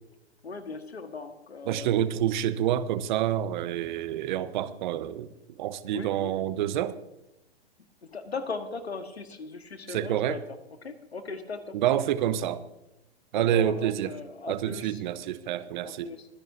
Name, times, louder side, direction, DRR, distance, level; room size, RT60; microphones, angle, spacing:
voice 1, 0.4-1.9 5.9-6.4 8.0-10.4 10.8-11.8 13.3-15.0 15.4-16.3, left 4 dB, 80° left, 8 dB, 1.6 m, -38 dB
voice 2, 1.6-7.0 9.9-10.4 11.7-12.6 13.3-14.2 14.5-16.1, right 11 dB, 50° right, 15 dB, 1.0 m, -28 dB
23.5 x 10.5 x 2.7 m, 0.93 s
figure-of-eight pair, 110°, 31 cm